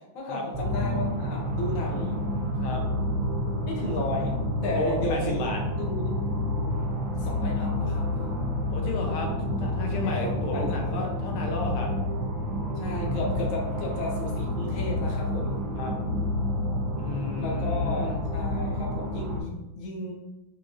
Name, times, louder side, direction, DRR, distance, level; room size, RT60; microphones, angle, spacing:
voice 1, 0.1-2.2 3.6-4.4 4.6-5.5 5.8-6.1 7.2-8.0 10.0-10.8 12.8-15.6 17.4-20.1, left 1 dB, 55° left, -2 dB, 1.0 m, -33 dB
sound 1, 0.5-19.4, left 1 dB, 75° right, 1.3 m, -29 dB
voice 2, 4.8-5.6 8.7-9.3 9.6-11.9 15.7-15.9 17.0-18.2, left 3 dB, 80° left, 1 dB, 1.6 m, -33 dB
4.9 x 2.9 x 2.5 m, 0.98 s
omnidirectional pair, 2.4 m